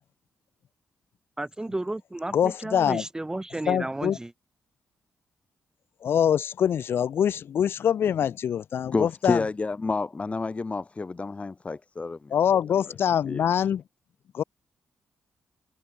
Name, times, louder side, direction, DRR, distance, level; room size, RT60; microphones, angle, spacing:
voice 1, 1.4-4.3, right 2 dB, 15° right, 6.2 m, -33 dB
voice 2, 2.3-3.0 3.7-4.2 6.0-9.4 12.3-13.8 14.3-14.4, left 9 dB, 75° left, 5.0 m, -24 dB
voice 3, 8.9-12.3 13.3-13.4, left 3 dB, 30° left, 1.9 m, -29 dB
cardioid pair, 70°, 4 cm